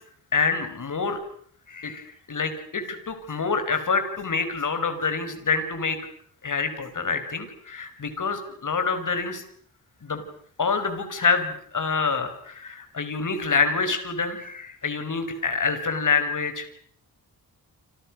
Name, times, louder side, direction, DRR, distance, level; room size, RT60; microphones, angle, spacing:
voice 1, 0.3-1.2 1.7-6.0 6.4-9.4 10.0-10.2 10.6-16.7, left 4 dB, 55° left, 9 dB, 5.5 m, -26 dB
30.0 x 26.5 x 6.4 m, 0.62 s
cardioid pair, 85°, 37 cm